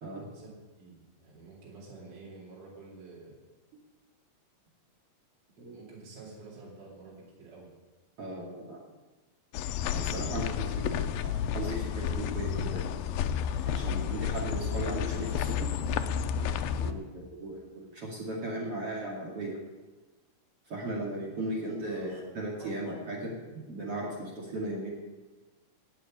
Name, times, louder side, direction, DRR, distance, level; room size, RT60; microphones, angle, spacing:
voice 1, 0.2-3.4 5.6-7.7 10.1-10.9 16.8-17.0 21.8-22.1 22.6-22.7, right 3 dB, 60° right, -5 dB, 5.1 m, -50 dB
voice 2, 8.2-8.8 9.9-12.9 13.6-15.7 16.8-19.6 20.7-24.9, right 1 dB, 45° right, -3 dB, 3.1 m, -37 dB
sound 1, 9.5-16.9, left 8 dB, 90° left, 2.5 m, -31 dB
18.5 x 7.2 x 8.8 m, 1.2 s
omnidirectional pair, 4.1 m